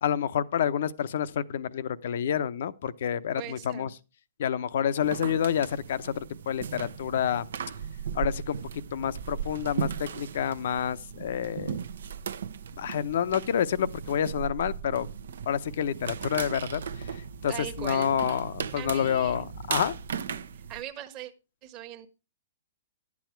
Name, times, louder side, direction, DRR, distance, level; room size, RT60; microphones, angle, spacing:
voice 1, 0.0-3.9 4.4-7.5 8.1-8.6 8.9-11.8 12.8-15.1 15.5-17.2 17.4-17.5 17.8-19.9, left 9 dB, 65° left, 0.7 m, -28 dB
voice 2, 3.4-3.9 17.5-18.1 18.7-19.5 20.5-21.3 21.6-22.1, right 12 dB, 30° right, 1.2 m, -40 dB
sound 1, 5.0-20.8, right 7 dB, 80° right, 0.7 m, -37 dB
11.5 x 8.5 x 4.5 m
hypercardioid pair, 140°, 0 cm